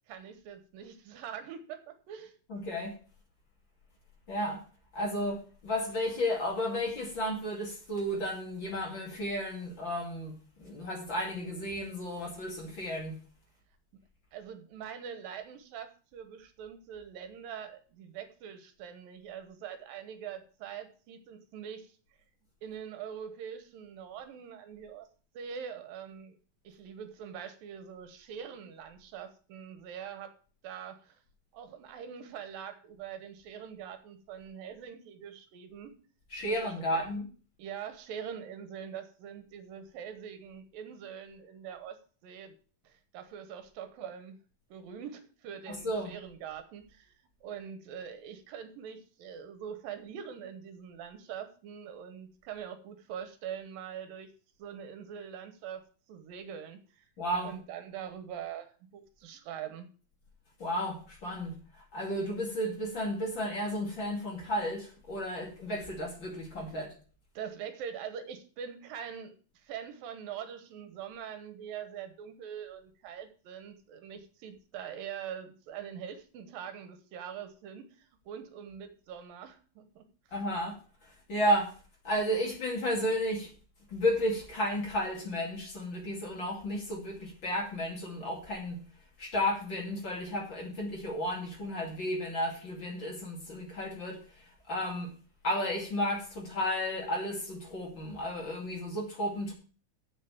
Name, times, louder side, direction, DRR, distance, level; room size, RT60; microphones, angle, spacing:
voice 1, 0.1-2.4 14.3-21.9 22.6-25.1 25.3-26.4 26.6-30.4 30.6-31.2 31.5-35.9 36.4-36.6 36.9-37.1 37.6-42.6 42.8-44.4 44.7-47.1 47.4-54.3 54.6-57.1 57.4-59.9 67.3-80.1, right 8 dB, 80° right, 10 dB, 2.8 m, -43 dB
voice 2, 2.5-3.0 4.3-4.6 4.9-13.2 36.3-37.3 45.7-46.1 57.2-57.5 60.6-66.9 80.3-80.7 81.0-81.7 82.0-83.5 83.9-88.8 89.2-95.1 95.4-99.5, equal, 35° left, -1 dB, 2.8 m, -33 dB
7.4 x 7.3 x 7.1 m, 0.40 s
omnidirectional pair, 4.0 m